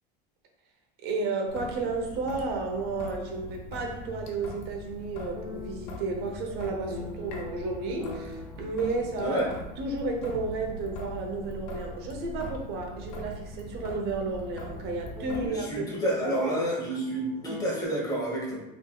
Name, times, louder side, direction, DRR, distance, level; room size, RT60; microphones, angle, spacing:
voice 1, 1.0-9.4 9.8-16.5, right 3 dB, 50° right, 2 dB, 0.9 m, -32 dB
Traffic noise roadway noise / Drip / Trickle dribble, 1.5-15.5, left 1 dB, 70° left, 0.9 m, -41 dB
sound 1, 3.6-4.4 5.3-14.1 14.5-14.6 15.1-17.8, left 3 dB, 15° right, 0.8 m, -45 dB
voice 2, 9.2-9.5 15.4-18.6, right 1 dB, 15° left, -4 dB, 1.3 m, -29 dB
3.9 x 3.6 x 2.4 m, 0.96 s
supercardioid pair, 130°, 21 cm